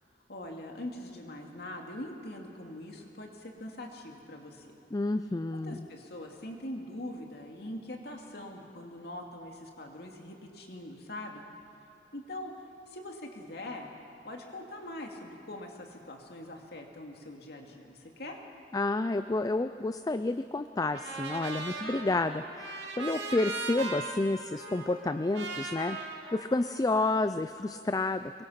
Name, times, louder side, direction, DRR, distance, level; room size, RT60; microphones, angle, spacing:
voice 1, 0.3-4.8 5.5-11.4 12.1-13.9 14.2-18.4, left 1 dB, 65° left, 1 dB, 2.5 m, -43 dB
voice 2, 4.9-5.9 18.7-26.0 26.3-28.3, left 2 dB, 20° left, 10 dB, 0.4 m, -30 dB
Trumpet, 20.9-27.1, right 3 dB, 90° right, 2.5 m, -39 dB
25.0 x 22.0 x 5.8 m, 2.7 s
head